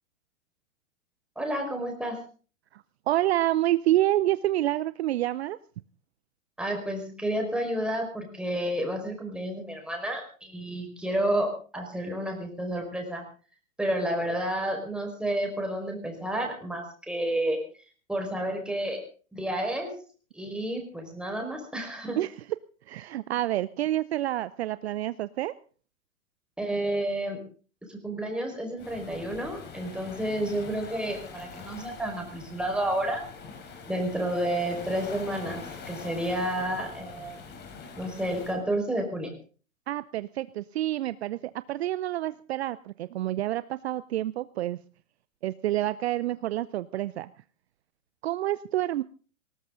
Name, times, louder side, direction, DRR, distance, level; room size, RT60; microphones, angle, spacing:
voice 1, 1.3-2.2 6.6-13.2 13.8-17.6 18.1-19.0 19.3-19.9 20.3-22.2 26.6-27.4 27.9-33.2 33.9-37.4 38.0-39.3, right 1 dB, ahead, 2 dB, 5.0 m, -30 dB
voice 2, 2.7-5.6 22.2-22.4 22.9-25.5 39.9-44.8 45.4-47.3 48.2-49.0, right 14 dB, 50° right, 16 dB, 0.7 m, -28 dB
Waves surf, 28.8-38.6, left 5 dB, 25° left, 4.1 m, -44 dB
19.5 x 18.5 x 3.9 m, 0.40 s
hypercardioid pair, 120°, 40 cm